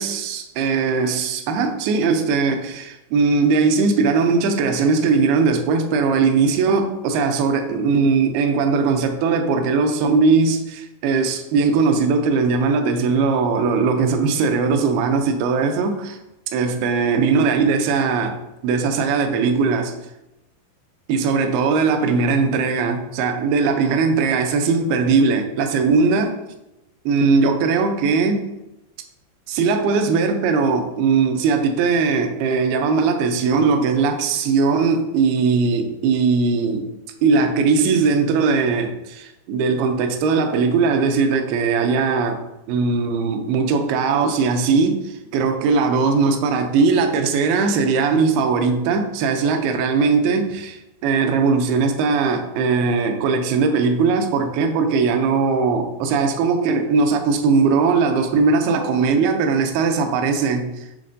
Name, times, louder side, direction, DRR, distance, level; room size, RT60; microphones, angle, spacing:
voice 1, 0.0-16.2 16.5-18.4 18.6-19.9 21.1-26.3 27.1-28.5 29.5-36.9 37.2-42.4 42.7-60.8, right 4 dB, 80° right, 6 dB, 2.5 m, -19 dB
9.9 x 3.7 x 2.6 m, 0.92 s
omnidirectional pair, 4.5 m